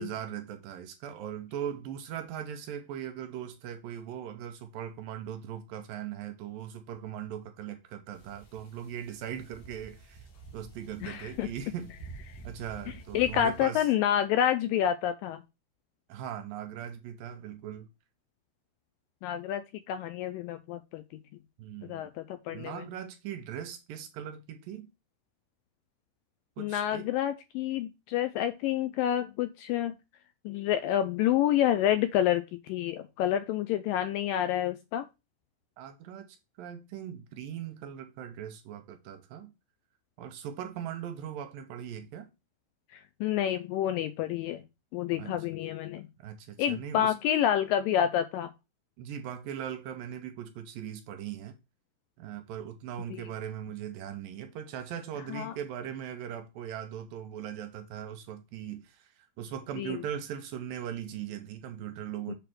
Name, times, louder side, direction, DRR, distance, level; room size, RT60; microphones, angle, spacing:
voice 1, 0.0-10.2 10.5-11.9 12.4-13.9 16.1-17.9 21.6-22.1 22.5-24.9 26.6-27.1 35.8-36.3 36.6-39.5 40.2-42.3 45.2-45.4 45.6-45.8 46.2-47.1 49.0-51.6 52.2-62.4, right 9 dB, 75° right, 2.3 m, -39 dB
sound 1, 8.1-13.7, right 4 dB, 60° left, 2.0 m, -49 dB
voice 2, 11.0-11.5 13.1-15.4 19.2-21.0 21.9-22.8 26.6-29.9 30.5-35.1 42.9-44.6 44.9-46.1 46.6-48.5 53.1-53.2 55.3-55.5 59.8-60.0 62.3-62.4, left 11 dB, 85° left, 2.0 m, -28 dB
6.8 x 3.2 x 6.0 m
omnidirectional pair, 4.4 m